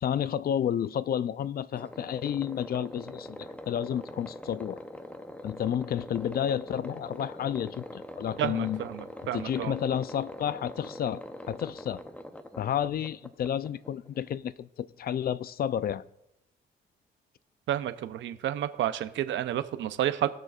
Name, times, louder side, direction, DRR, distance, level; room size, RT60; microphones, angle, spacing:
voice 1, 0.0-4.8 5.4-8.8 9.3-12.0 12.6-16.0, left 9 dB, 50° left, 0.5 m, -31 dB
sound 1, 1.8-14.4, left 1 dB, 5° left, 0.8 m, -43 dB
voice 2, 8.4-9.7 17.7-20.3, right 11 dB, 70° right, 0.7 m, -30 dB
19.5 x 6.7 x 2.5 m
cardioid pair, 90°, 20 cm